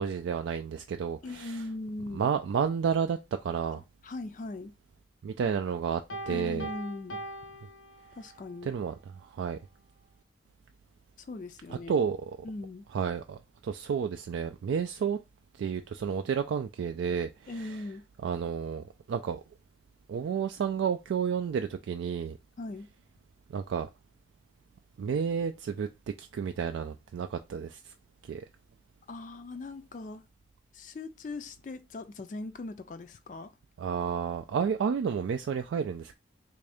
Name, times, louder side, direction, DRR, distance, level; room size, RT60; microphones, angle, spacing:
voice 1, 0.0-1.6 2.1-3.8 5.2-6.7 8.6-8.9 9.2-9.6 11.7-12.2 12.9-15.2 15.6-17.7 18.2-19.4 20.1-22.4 23.5-23.9 25.0-25.9 26.2-27.9 28.2-28.5 33.8-36.2, right 6 dB, 80° right, 0.3 m, -31 dB
voice 2, 1.2-2.3 3.7-4.7 6.3-7.2 8.2-8.7 11.2-12.0 12.4-12.8 17.5-18.0 22.6-22.9 29.1-30.3 30.7-33.5, left 2 dB, 40° left, 0.3 m, -40 dB
Piano, 6.1-8.5, right 1 dB, 90° left, 0.9 m, -41 dB
3.6 x 2.6 x 3.3 m
head